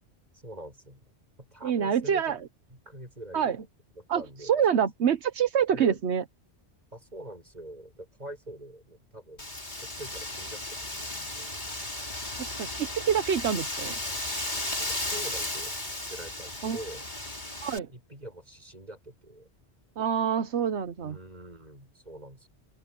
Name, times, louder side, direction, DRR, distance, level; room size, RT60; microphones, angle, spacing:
voice 1, 0.4-1.0 1.4-2.4 2.9-3.6 4.0-4.8 5.7-5.9 6.9-9.5 9.8-11.6 14.8-15.7 16.1-17.4 17.9-19.5 20.9-22.5, right 1 dB, 40° right, 7.9 m, -45 dB
voice 2, 1.6-2.5 3.3-3.6 4.1-6.2 12.4-13.9 16.6-16.8 17.6-17.9 20.0-21.2, right 8 dB, 85° right, 1.2 m, -26 dB
Wind, 9.4-17.8, left 1 dB, 45° left, 4.1 m, -35 dB
open air
omnidirectional pair, 1.1 m